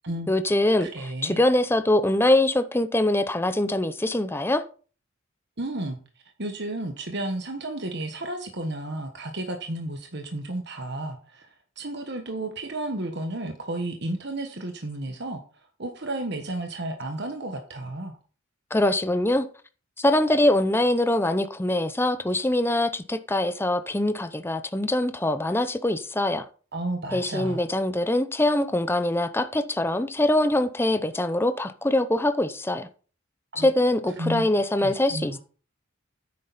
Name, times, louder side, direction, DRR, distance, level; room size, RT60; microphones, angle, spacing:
voice 1, 0.3-0.9 1.2-4.6 18.7-19.5 20.0-26.5 27.1-32.9 33.6-35.4, left 1 dB, 10° left, 0.6 m, -23 dB
voice 2, 0.8-1.4 5.6-6.0 6.4-11.5 11.8-15.4 15.8-18.2 26.7-27.6 33.5-33.7 34.2-34.4 34.8-35.4, right 1 dB, 55° right, 1.4 m, -32 dB
10.0 x 8.6 x 4.2 m
head